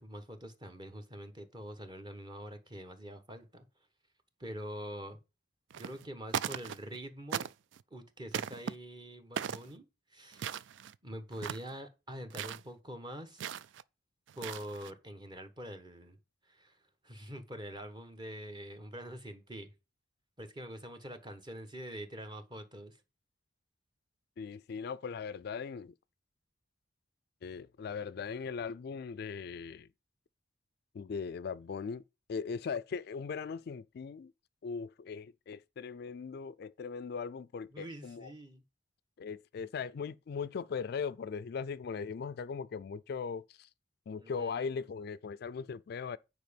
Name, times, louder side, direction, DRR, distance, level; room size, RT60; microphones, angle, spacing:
voice 1, 0.0-3.7 4.4-5.2 5.8-7.5 7.9-9.9 10.1-10.6 11.0-13.4 14.4-16.2 16.5-16.8 17.0-19.7 20.4-23.0 37.7-38.6 44.2-44.7, equal, 25° right, 1.2 m, -45 dB
sound 1, 5.7-6.0 6.3-7.0 7.3-7.8 8.3-8.7 9.4-9.7 10.3-11.0 11.3-11.7 12.3-12.6 13.4-13.8 14.3-14.9, right 8 dB, 80° right, 0.4 m, -38 dB
voice 2, 24.4-25.9 27.4-29.9 30.9-32.0 32.3-34.3 34.6-38.3 39.2-43.7 44.1-46.2, left 5 dB, 60° left, 0.4 m, -39 dB
9.3 x 4.7 x 5.2 m
head